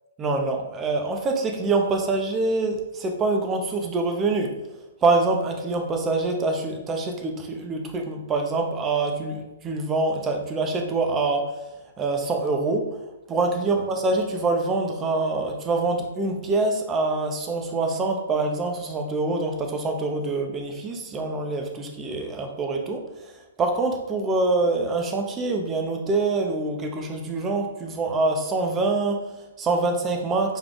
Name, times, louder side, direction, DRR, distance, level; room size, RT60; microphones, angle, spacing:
voice 1, 0.2-4.6 5.0-11.7 12.0-30.6, right 3 dB, 15° right, 3 dB, 0.5 m, -25 dB
3.5 x 2.3 x 3.8 m, 1.0 s
hypercardioid pair, 155°, 0 cm